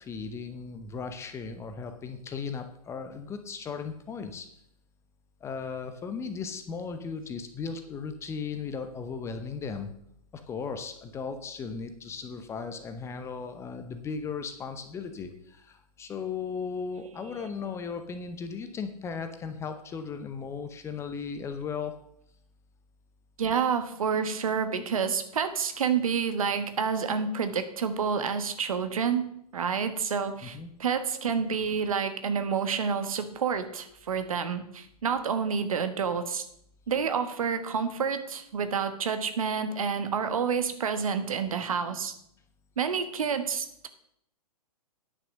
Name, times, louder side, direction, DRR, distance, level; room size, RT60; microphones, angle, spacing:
voice 1, 0.0-4.5 5.4-9.9 10.5-21.9 30.4-30.7, left 5 dB, 15° left, 8 dB, 0.8 m, -36 dB
voice 2, 17.0-17.5 23.4-36.4 36.9-42.1 42.8-43.9, right 6 dB, 60° right, 10 dB, 1.2 m, -29 dB
9.8 x 6.2 x 6.2 m, 0.73 s
figure-of-eight pair, 115°, 20 cm